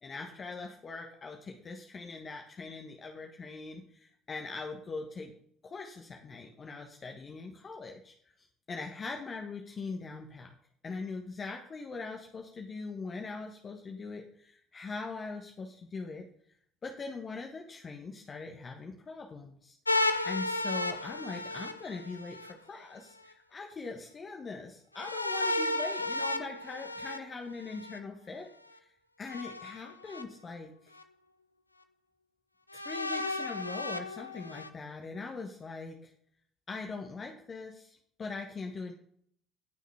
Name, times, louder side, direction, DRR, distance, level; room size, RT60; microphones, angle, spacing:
voice 1, 0.0-5.3 5.6-10.5 10.8-16.3 16.8-19.8 20.2-28.5 28.8-28.9 29.2-30.9 32.7-36.1 36.7-38.9, left 4 dB, 30° left, 2 dB, 1.4 m, -41 dB
sound 1, 19.9-22.5 25.0-28.0 29.3-30.2 31.0-31.1 32.7-34.7, left 2 dB, 85° left, 0.5 m, -33 dB
17.5 x 6.4 x 3.5 m, 0.62 s
figure-of-eight pair, 55°, 0 cm